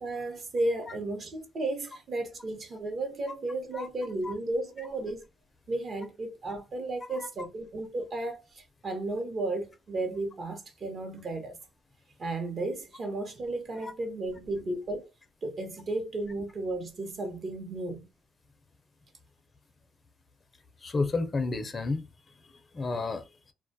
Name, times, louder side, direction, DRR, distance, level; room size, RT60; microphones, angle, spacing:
voice 1, 0.0-5.2 5.7-11.6 12.2-15.1 15.4-18.1, right 2 dB, 50° right, 0.8 m, -34 dB
voice 2, 20.8-22.1 22.4-23.5, left 3 dB, 35° left, 0.5 m, -32 dB
2.2 x 2.2 x 2.6 m
cardioid pair, 90°, 0 cm